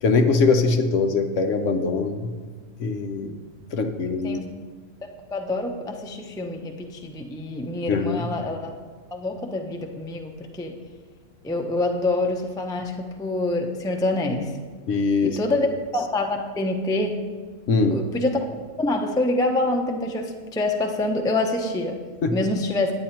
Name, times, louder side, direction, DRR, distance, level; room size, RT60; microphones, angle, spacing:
voice 1, 0.0-2.3 2.8-3.4 3.7-4.4 7.9-8.3 14.9-15.4 17.7-18.0 22.2-22.3, left 4 dB, 65° left, 6 dB, 1.0 m, -22 dB
voice 2, 5.0-8.7 9.1-10.8 11.4-14.6 15.2-15.7 15.9-17.2 17.9-22.0 22.3-22.9, left 2 dB, 5° left, 2 dB, 0.3 m, -26 dB
9.6 x 9.0 x 4.4 m, 1.5 s
omnidirectional pair, 1.5 m